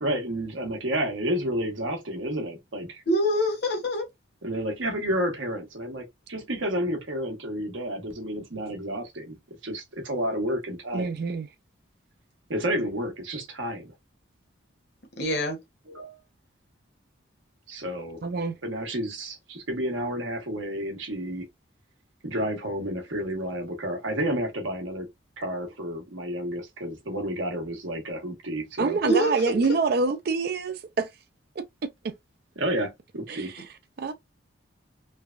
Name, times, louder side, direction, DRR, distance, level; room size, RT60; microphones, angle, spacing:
voice 1, 0.0-3.0 4.4-9.4 9.6-11.1 12.5-13.9 15.9-16.2 17.7-18.2 18.6-21.5 22.2-25.1 25.4-29.0 32.6-33.5, equal, 80° right, 1.1 m, -30 dB
voice 2, 3.1-4.0 15.2-15.6 29.0-29.3, equal, 55° left, 1.1 m, -24 dB
voice 3, 10.9-11.5 18.2-18.5 28.8-31.1 32.0-32.1 33.3-33.6 34.0-34.1, right 4 dB, 50° right, 0.4 m, -26 dB
3.2 x 2.2 x 2.4 m
head